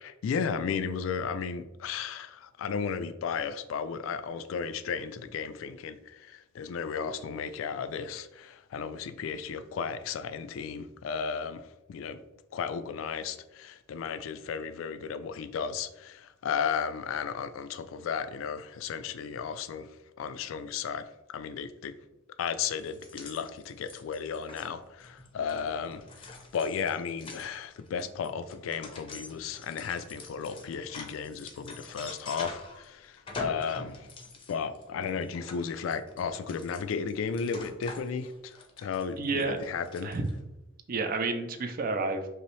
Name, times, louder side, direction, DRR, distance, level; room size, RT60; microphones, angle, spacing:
voice 1, 0.0-12.2 12.5-21.9 22.4-34.1 34.5-40.1, left 6 dB, 80° left, 11 dB, 0.3 m, -34 dB
sound 1, 22.8-32.8 33.1-40.4, left 3 dB, 25° left, 0.5 m, -46 dB
voice 2, 39.2-39.6 40.0-40.3 40.9-42.3, right 3 dB, 45° right, 6 dB, 0.4 m, -30 dB
5.4 x 2.0 x 3.1 m, 0.95 s
head